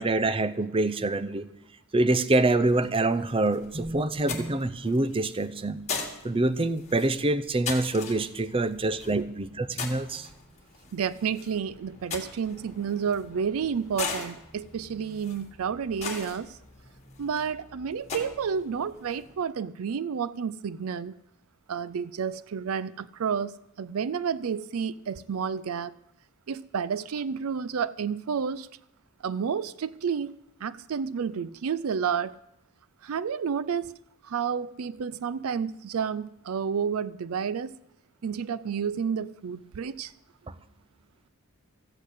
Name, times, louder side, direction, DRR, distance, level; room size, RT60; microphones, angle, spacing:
voice 1, 0.0-1.5 1.9-5.8 6.2-10.3, right 2 dB, 25° right, 0.6 m, -26 dB
sound 1, 2.7-19.4, left 5 dB, 30° left, 2.0 m, -41 dB
voice 2, 10.9-16.6 17.2-21.2 21.7-25.9 26.5-28.7 29.2-30.3 30.6-32.4 33.0-33.9 34.2-37.8 38.2-40.1, right 6 dB, 70° right, 0.4 m, -30 dB
14.0 x 8.4 x 8.2 m
head